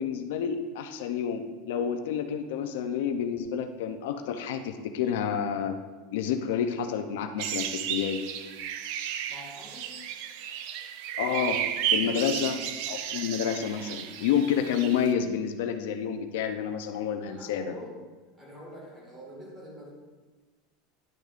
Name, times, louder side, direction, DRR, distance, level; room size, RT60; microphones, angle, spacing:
voice 1, 0.0-5.8 6.1-8.2 11.2-12.6 12.9-17.7, left 8 dB, 75° left, 7 dB, 0.5 m, -29 dB
sound 1, 7.4-15.1, right 9 dB, 55° right, 0.5 m, -33 dB
voice 2, 9.3-10.0 12.0-12.5 17.3-19.9, equal, 10° right, -3 dB, 1.8 m, -45 dB
10.0 x 6.4 x 2.5 m, 1.3 s
supercardioid pair, 170°, 0 cm